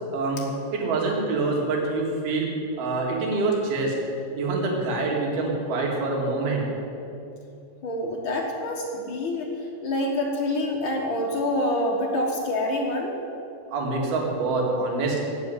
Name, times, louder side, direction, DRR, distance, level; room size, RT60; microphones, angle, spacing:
voice 1, 0.1-2.5 2.8-3.9 4.3-6.6 13.7-15.2, right 3 dB, 65° right, -1 dB, 4.1 m, -25 dB
voice 2, 7.8-9.5 9.8-13.2, left 1 dB, 80° left, -1 dB, 1.1 m, -26 dB
16.5 x 6.9 x 9.6 m, 2.8 s
omnidirectional pair, 4.8 m